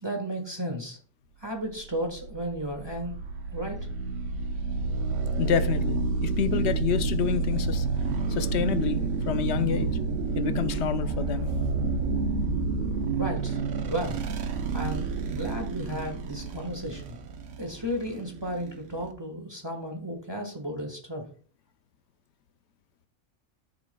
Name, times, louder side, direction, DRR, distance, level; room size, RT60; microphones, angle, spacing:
voice 1, 0.0-1.0 1.4-3.2 3.5-3.9 13.2-14.2 14.7-17.2 17.6-21.2, equal, 20° right, 1.4 m, -34 dB
sound 1, 1.7-19.1, right 4 dB, 75° right, 1.1 m, -29 dB
voice 2, 5.4-7.9 8.3-10.0 10.3-11.5, left 9 dB, 65° left, 0.9 m, -28 dB
12.5 x 6.6 x 2.2 m
omnidirectional pair, 1.3 m